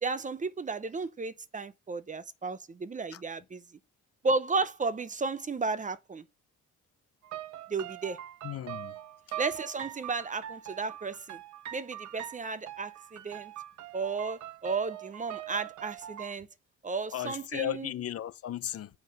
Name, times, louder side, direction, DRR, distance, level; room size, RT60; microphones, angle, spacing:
voice 1, 0.0-3.6 4.2-6.2 7.7-8.2 9.4-11.4 11.7-13.5 13.9-16.5 16.8-17.9, right 4 dB, 25° right, 0.6 m, -33 dB
sound 1, 7.2-16.3, right 12 dB, 70° right, 0.8 m, -42 dB
voice 2, 8.4-8.9 17.1-18.9, left 12 dB, 50° left, 0.6 m, -35 dB
7.4 x 5.7 x 6.6 m
cardioid pair, 90°, 30 cm